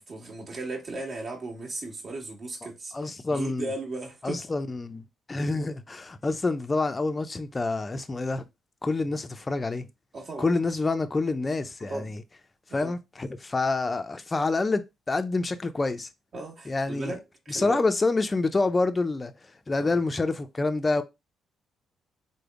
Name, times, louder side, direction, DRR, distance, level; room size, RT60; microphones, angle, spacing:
voice 1, 0.0-2.9 3.3-4.4 10.1-10.5 11.9-12.1 12.7-12.9 16.3-17.8 19.8-20.0, right 2 dB, 45° right, 1.4 m, -36 dB
voice 2, 2.9-3.7 4.2-8.4 8.8-9.9 10.4-12.2 12.7-16.1 16.7-17.1 17.5-19.3 19.7-21.0, left 3 dB, 25° left, 0.4 m, -27 dB
3.4 x 2.1 x 3.5 m
cardioid pair, 90°, 0 cm